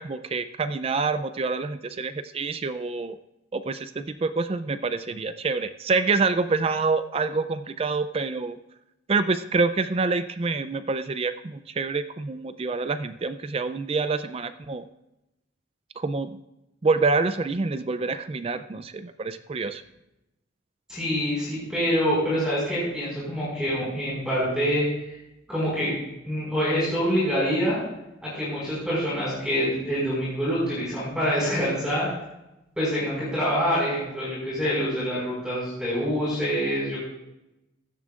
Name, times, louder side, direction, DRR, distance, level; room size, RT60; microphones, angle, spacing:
voice 1, 0.0-3.2 3.5-8.6 9.1-14.8 16.0-16.4 16.8-19.8, right 4 dB, 30° right, 12 dB, 0.4 m, -27 dB
voice 2, 20.9-24.8 25.5-25.9 26.3-27.8 28.2-32.1 32.8-37.0, equal, 5° right, -8 dB, 5.1 m, -26 dB
16.0 x 13.0 x 2.4 m, 0.92 s
head